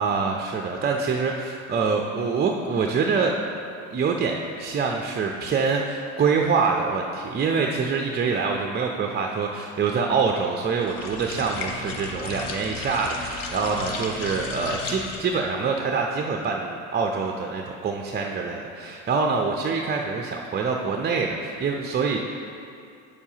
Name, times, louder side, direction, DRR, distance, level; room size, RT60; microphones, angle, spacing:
voice 1, 0.0-3.3 3.9-22.2, right 5 dB, 25° right, 2 dB, 0.5 m, -25 dB
sound 1, 10.8-15.4, left 4 dB, 55° left, 1.0 m, -34 dB
8.3 x 6.9 x 2.8 m, 2.5 s
hypercardioid pair, 75°, 41 cm